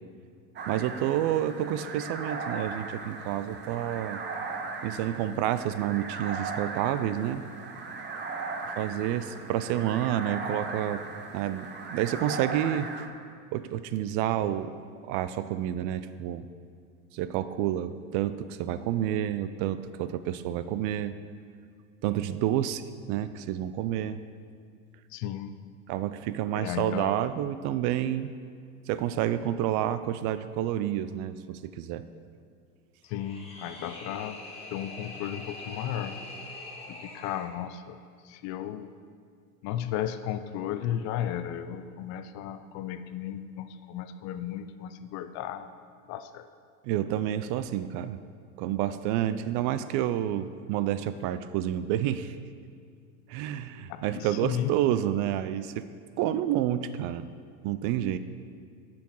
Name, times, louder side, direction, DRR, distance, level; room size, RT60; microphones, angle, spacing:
sound 1, 0.6-13.1, right 4 dB, 25° right, 0.9 m, -38 dB
voice 1, 0.7-4.2 4.8-7.4 8.8-11.0 11.3-12.9 13.5-14.7 15.0-16.5 17.1-21.1 22.0-22.8 23.1-24.2 25.9-28.3 28.9-32.0 46.8-48.2 48.6-52.3 53.3-55.9 56.2-57.3 57.6-58.2, right 11 dB, 45° right, 13 dB, 0.5 m, -29 dB
voice 2, 25.1-25.5 26.5-27.1 33.1-34.4 34.7-36.2 36.9-38.0 38.2-38.9 39.6-45.7 46.1-46.5 53.9-54.7, left 11 dB, 40° left, 11 dB, 0.6 m, -34 dB
sound 2, 33.0-37.5, left 2 dB, 15° left, 1.9 m, -43 dB
10.0 x 6.1 x 4.7 m, 2.2 s
hypercardioid pair, 100°, 43 cm